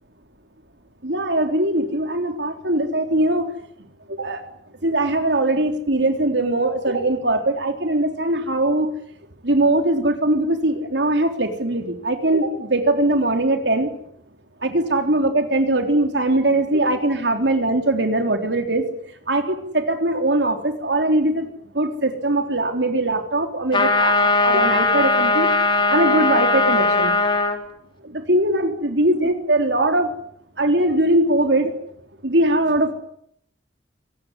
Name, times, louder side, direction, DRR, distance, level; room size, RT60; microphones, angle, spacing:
voice 1, 1.0-3.5 4.2-4.4 4.8-8.9 9.4-13.9 14.6-18.8 19.3-21.5 21.7-25.5 25.9-27.1 28.0-30.1 30.6-31.7 32.2-32.9, right 1 dB, 75° right, 5 dB, 3.7 m, -21 dB
sound 1, 23.7-27.6, left 3 dB, 30° left, 3.7 m, -19 dB
24.5 x 18.5 x 9.9 m, 0.71 s
head